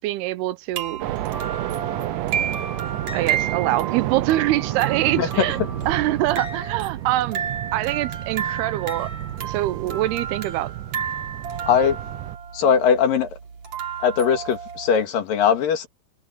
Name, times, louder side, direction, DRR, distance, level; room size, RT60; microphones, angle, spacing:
voice 1, 0.0-1.0 3.1-5.6 5.9-7.4 7.7-9.1 9.4-10.7, right 16 dB, 90° right, 2.8 m, -24 dB
sound 1, 0.7-15.1, right 7 dB, 45° right, 4.1 m, -32 dB
sound 2, 1.0-12.4, right 15 dB, 70° right, 2.1 m, -31 dB
voice 2, 11.7-12.0 12.5-13.4 14.0-15.9, left 7 dB, 65° left, 3.5 m, -20 dB
omnidirectional pair, 4.5 m